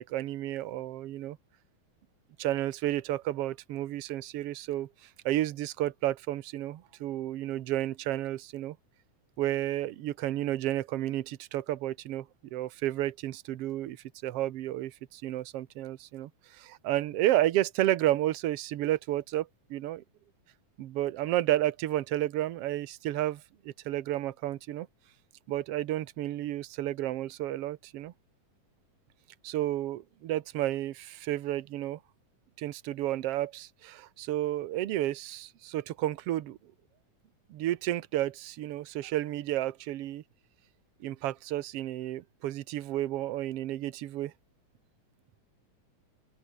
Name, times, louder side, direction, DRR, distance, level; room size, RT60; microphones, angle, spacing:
voice 1, 0.0-1.4 2.4-8.8 9.4-20.0 20.8-24.9 25.5-28.1 29.4-32.0 32.6-36.6 37.5-40.2 41.0-44.3, right 14 dB, 65° right, 1.6 m, -31 dB
open air
omnidirectional pair, 3.7 m